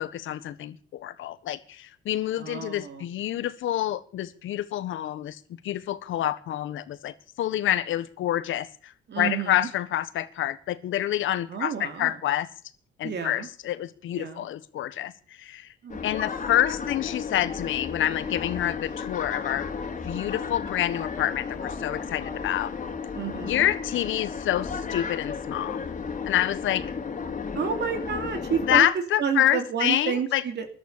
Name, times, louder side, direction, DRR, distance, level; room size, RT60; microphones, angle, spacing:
voice 1, 0.0-12.5 13.0-15.7 16.0-19.7 20.0-22.7 23.4-25.8 26.2-26.9 28.7-30.4, left 12 dB, 80° left, 14 dB, 1.4 m, -27 dB
voice 2, 2.4-3.1 9.1-9.7 11.5-12.2 13.0-13.5 14.2-14.4 15.8-16.1 23.1-23.7 27.5-30.7, right 7 dB, 60° right, 6 dB, 2.9 m, -30 dB
sound 1, 15.9-28.8, left 5 dB, 40° left, 3.0 m, -34 dB
14.0 x 11.5 x 8.5 m, 0.43 s
cardioid pair, 90°, 20 cm